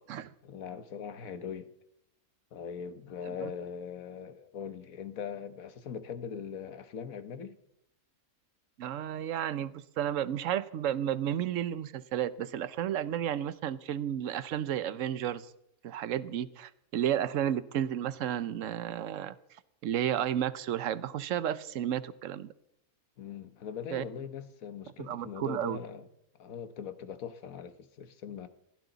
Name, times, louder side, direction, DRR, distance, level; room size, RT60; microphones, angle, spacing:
voice 1, 0.4-1.7 2.5-7.6 23.2-26.1 26.4-28.5, left 7 dB, 70° left, 1.4 m, -41 dB
voice 2, 8.8-15.5 15.8-19.3 19.8-22.5 23.9-24.0 25.0-25.8, right 10 dB, 65° right, 1.1 m, -32 dB
21.0 x 16.0 x 4.0 m
omnidirectional pair, 1.5 m